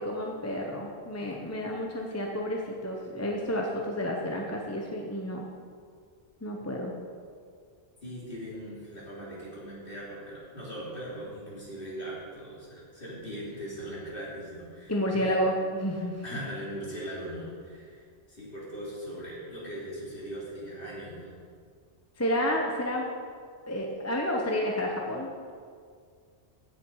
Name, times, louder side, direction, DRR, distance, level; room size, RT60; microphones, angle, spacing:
voice 1, 0.0-5.5 6.4-6.9 14.9-16.2 22.2-23.0 23.6-25.5, equal, 15° left, 0 dB, 1.0 m, -30 dB
voice 2, 8.0-15.4 16.2-21.3, equal, 50° left, -7 dB, 3.6 m, -40 dB
16.0 x 7.2 x 4.8 m, 2.1 s
omnidirectional pair, 1.2 m